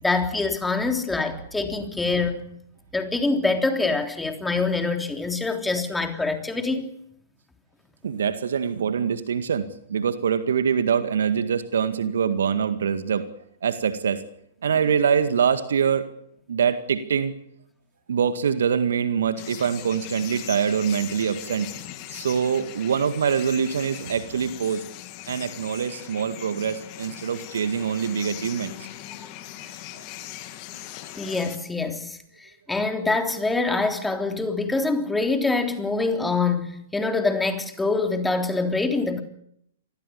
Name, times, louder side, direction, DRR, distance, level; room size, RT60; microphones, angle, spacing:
voice 1, 0.0-2.4 2.9-6.9 31.2-32.2 32.7-39.2, left 3 dB, 5° left, 5 dB, 3.4 m, -25 dB
voice 2, 8.0-13.3 13.6-14.2 14.6-16.1 16.5-17.3 18.1-21.7 22.1-24.8 25.3-28.7 29.9-30.0, right 7 dB, 65° right, 11 dB, 1.9 m, -24 dB
sound 1, 19.4-31.6, left 14 dB, 35° left, 2.8 m, -40 dB
28.0 x 21.0 x 7.0 m, 0.73 s
figure-of-eight pair, 110°, 0 cm